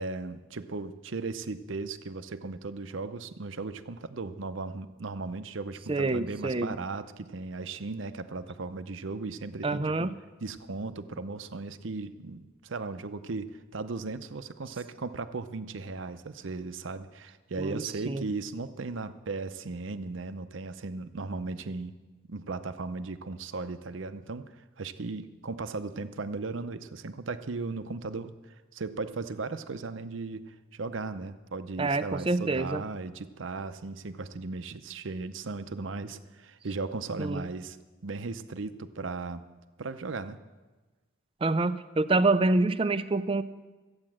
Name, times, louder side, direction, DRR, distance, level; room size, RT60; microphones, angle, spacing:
voice 1, 0.0-10.1 10.4-22.0 22.3-24.4 24.8-37.8 38.0-39.4 39.8-40.4, right 3 dB, 75° right, 11 dB, 0.7 m, -37 dB
voice 2, 5.9-6.7 9.6-10.1 17.6-18.2 31.8-32.8 37.2-37.5 41.4-43.4, right 2 dB, 25° right, 13 dB, 0.4 m, -27 dB
14.0 x 8.8 x 7.4 m, 1.2 s
head